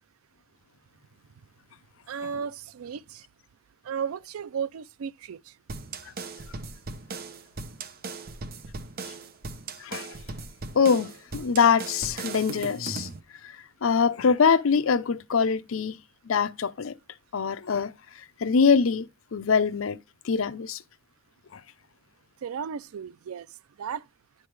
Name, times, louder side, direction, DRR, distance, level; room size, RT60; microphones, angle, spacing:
voice 1, 2.1-3.2 3.8-5.4 22.4-23.5 23.8-24.0, right 7 dB, 90° right, 0.4 m, -34 dB
sound 1, 5.7-13.2, right 3 dB, 45° right, 0.7 m, -38 dB
voice 2, 10.8-13.1 13.8-16.0 16.3-16.9 17.3-17.9 18.4-19.1 19.3-20.0 20.3-20.8, left 5 dB, 70° left, 0.5 m, -23 dB
10.0 x 3.4 x 4.7 m
head